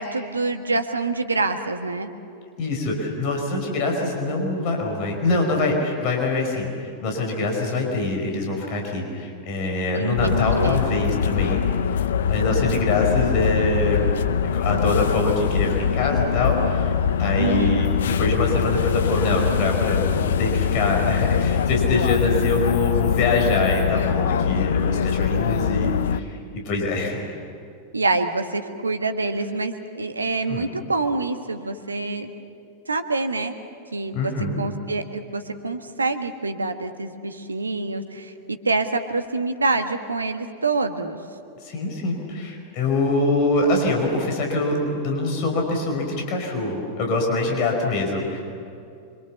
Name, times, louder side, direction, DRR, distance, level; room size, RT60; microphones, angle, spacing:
voice 1, 0.0-2.1 9.9-10.8 17.3-17.8 27.9-32.3 32.9-33.5 33.9-34.3 34.6-38.3 38.6-41.2, right 3 dB, 80° right, 7 dB, 1.5 m, -26 dB
voice 2, 2.6-6.7 7.0-11.6 12.2-14.1 14.4-16.9 17.2-26.4 26.7-27.2 30.5-30.7 34.1-34.6 41.6-48.4, left 2 dB, 45° left, 1 dB, 5.2 m, -24 dB
sound 1, 10.2-26.2, left 7 dB, 60° left, 0.7 m, -23 dB
25.5 x 25.0 x 7.2 m, 2.5 s
figure-of-eight pair, 90°, 0 cm